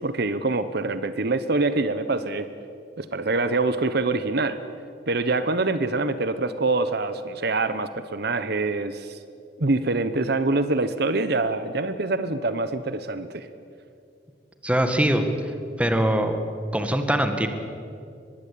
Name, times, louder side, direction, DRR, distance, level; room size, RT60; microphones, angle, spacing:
voice 1, 0.0-2.5 3.0-4.6 5.1-9.2 9.6-13.5, right 3 dB, 60° right, 12 dB, 1.0 m, -25 dB
voice 2, 14.6-15.2 15.8-16.4 16.7-17.5, right 1 dB, 5° right, 7 dB, 1.9 m, -22 dB
24.0 x 21.5 x 8.5 m, 2.5 s
head